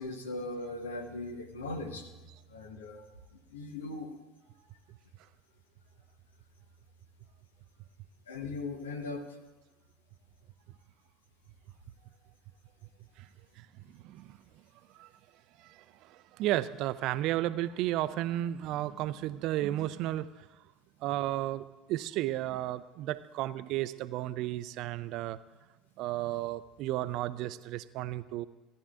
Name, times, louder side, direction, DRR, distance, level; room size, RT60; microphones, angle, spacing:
voice 1, 0.0-2.1 2.5-3.1 3.5-4.1 8.3-9.4, left 2 dB, 85° left, 6 dB, 1.1 m, -39 dB
voice 2, 13.6-14.4 14.9-15.1 15.6-20.5 21.0-25.4 26.0-28.4, right 14 dB, 60° right, 15 dB, 0.4 m, -33 dB
17.5 x 10.5 x 2.5 m, 1.2 s
hypercardioid pair, 70°, 0 cm